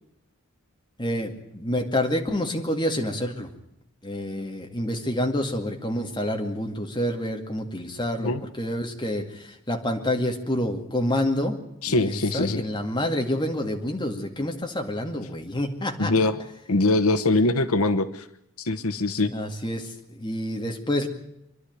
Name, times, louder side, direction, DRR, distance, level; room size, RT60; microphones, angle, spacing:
voice 1, 1.0-3.5 4.0-11.6 11.9-16.1 19.3-19.9 20.2-21.1, left 1 dB, 20° left, 3 dB, 2.2 m, -28 dB
voice 2, 11.8-12.6 16.0-16.4 16.7-18.3 18.6-19.3, left 2 dB, 80° left, 10 dB, 1.0 m, -22 dB
26.5 x 11.5 x 9.5 m, 0.82 s
head